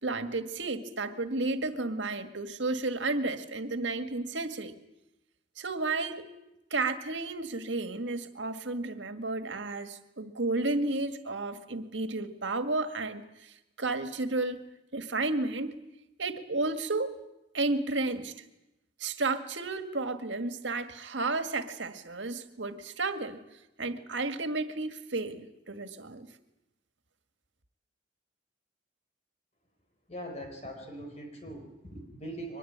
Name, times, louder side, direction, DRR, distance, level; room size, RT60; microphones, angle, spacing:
voice 1, 0.0-4.7 5.6-6.3 6.7-14.6 14.9-15.8 16.2-17.2 17.5-18.3 19.0-23.4 23.8-26.3, right 3 dB, 90° right, 8 dB, 1.9 m, -32 dB
voice 2, 30.1-32.6, right 1 dB, 35° left, 4 dB, 4.8 m, -41 dB
23.5 x 21.0 x 8.8 m, 0.91 s
head